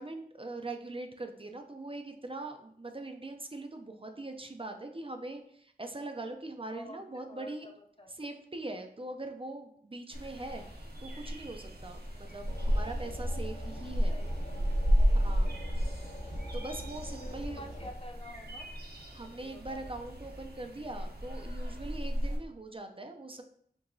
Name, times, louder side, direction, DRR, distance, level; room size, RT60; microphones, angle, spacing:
voice 1, 0.0-7.7 8.2-10.6 11.0-14.2 15.1-15.5 16.5-17.6 19.1-23.4, right 2 dB, 30° right, 5 dB, 0.4 m, -42 dB
voice 2, 6.7-7.7 8.0-8.1 14.1-14.6 15.0-16.0 17.2-18.7 19.2-19.9 21.7-22.1, left 1 dB, 30° left, 4 dB, 0.4 m, -50 dB
sound 1, 10.1-22.4, equal, 60° right, 0.8 m, -33 dB
sound 2, 12.5-17.9, equal, 65° left, 1.5 m, -44 dB
4.6 x 2.9 x 2.6 m, 0.65 s
wide cardioid pair, 50°, 18 cm